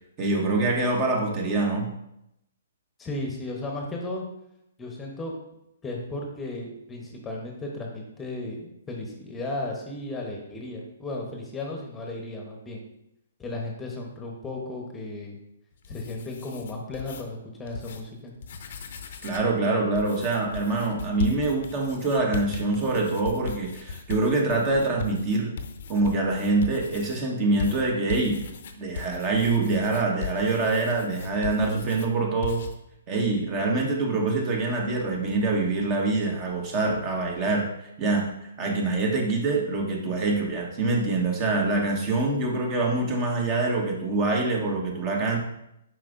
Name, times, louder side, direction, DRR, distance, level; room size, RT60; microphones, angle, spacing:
voice 1, 0.2-1.9 19.2-25.5 25.9-28.4 28.7-32.6 33.1-37.7 38.0-45.4, right 3 dB, 30° right, 1 dB, 1.1 m, -25 dB
voice 2, 3.0-4.2 4.8-5.3 5.8-12.8 13.4-15.4 15.9-18.3, left 2 dB, 10° left, 0 dB, 1.0 m, -35 dB
sound 1, 15.7-17.2 17.7-18.0 18.3-19.5 20.0-27.2 27.6-32.1 32.4-32.7, left 5 dB, 55° left, 0.7 m, -37 dB
7.4 x 5.0 x 2.5 m, 0.81 s
figure-of-eight pair, 130°, 0 cm